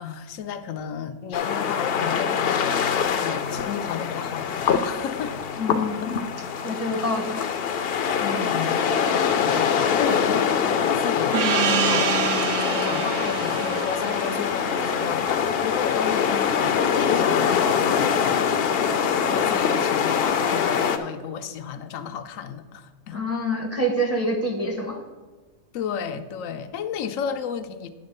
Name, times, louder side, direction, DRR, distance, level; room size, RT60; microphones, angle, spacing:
voice 1, 0.0-5.5 6.0-6.1 6.8-7.0 8.2-12.2 12.6-18.5 19.1-23.3 25.7-27.9, left 7 dB, 85° left, 1.0 m, -33 dB
sound 1, 1.3-21.0, left 7 dB, 60° left, 0.7 m, -24 dB
voice 2, 5.6-6.2 6.6-7.4 23.1-25.0, equal, 15° right, 0.7 m, -26 dB
Gong, 11.3-16.4, right 8 dB, 75° right, 1.0 m, -28 dB
9.6 x 3.7 x 6.5 m
omnidirectional pair, 1.3 m